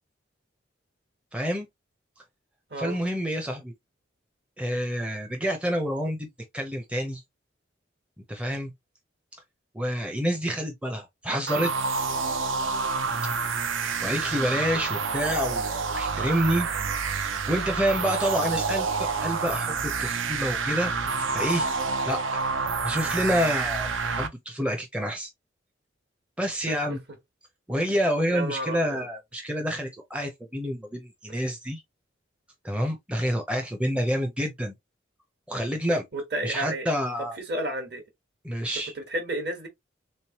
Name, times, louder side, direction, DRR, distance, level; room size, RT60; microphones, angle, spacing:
voice 1, 1.3-1.7 2.8-3.7 4.6-6.3 6.5-7.2 8.3-8.7 9.3-9.4 9.7-11.7 14.0-16.7 17.5-20.9 21.3-21.7 22.1-22.4 22.8-23.9 24.1-25.3 26.4-27.0 27.7-31.8 32.6-34.7 35.5-36.0 36.4-37.4 38.4-38.9, equal, 5° right, 0.5 m, -28 dB
sound 1, 11.5-24.3, right 4 dB, 75° right, 0.6 m, -28 dB
voice 2, 28.3-29.0 36.1-36.9 37.5-38.0 38.9-39.7, right 1 dB, 55° right, 1.2 m, -31 dB
3.5 x 3.1 x 2.8 m
head